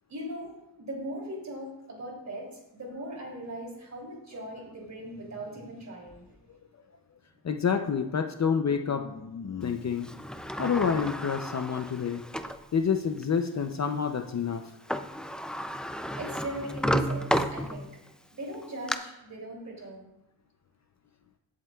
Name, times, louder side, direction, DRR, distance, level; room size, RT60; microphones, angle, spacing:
voice 1, 0.1-0.5 0.8-6.3 16.2-17.9 18.3-20.1, right 1 dB, 40° right, -1 dB, 3.0 m, -39 dB
voice 2, 7.4-10.1 10.6-12.2 12.7-14.7, left 6 dB, 40° left, 6 dB, 0.6 m, -28 dB
Sliding door, 10.0-12.6 13.2-13.3 14.6-14.7 14.9-18.1 18.5-19.0, equal, ahead, 0.3 m, -32 dB
16.0 x 7.5 x 2.4 m, 0.91 s
wide cardioid pair, 125°, 43 cm